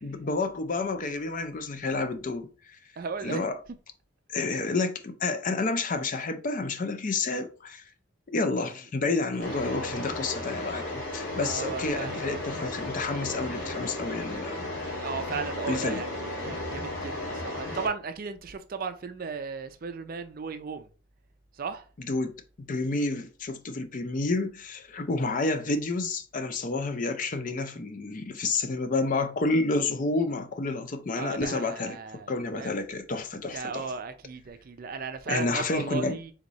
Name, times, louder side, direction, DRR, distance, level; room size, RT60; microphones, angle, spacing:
voice 1, 0.0-2.5 3.2-3.6 4.3-7.8 8.3-14.7 15.7-16.0 22.0-22.3 22.6-32.0 32.3-33.9 35.3-36.2, left 3 dB, 40° left, 0.5 m, -29 dB
voice 2, 3.0-3.4 9.5-9.6 11.3-12.4 15.0-20.9 21.6-21.8 31.1-32.3 32.6-32.8 33.5-36.3, right 5 dB, 45° right, 0.4 m, -36 dB
sound 1, 9.4-17.9, left 1 dB, 75° left, 1.7 m, -34 dB
4.0 x 3.5 x 3.0 m
head